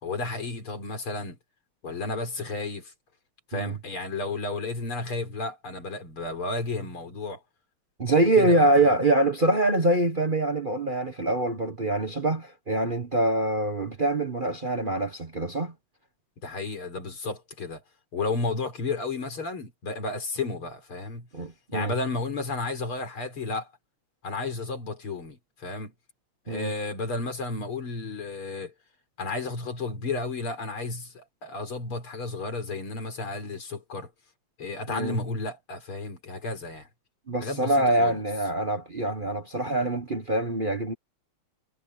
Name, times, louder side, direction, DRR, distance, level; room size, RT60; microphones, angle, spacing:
voice 1, 0.0-1.4 1.8-2.9 3.5-7.4 8.4-8.9 16.4-17.8 18.1-21.3 21.7-23.7 24.2-25.9 26.5-28.7 29.2-34.1 34.6-36.9 37.4-38.2, left 3 dB, 75° left, 4.9 m, -32 dB
voice 2, 8.0-15.7 21.3-21.9 26.5-26.7 34.9-35.2 37.3-40.9, right 2 dB, 30° right, 1.2 m, -24 dB
omnidirectional pair, 2.4 m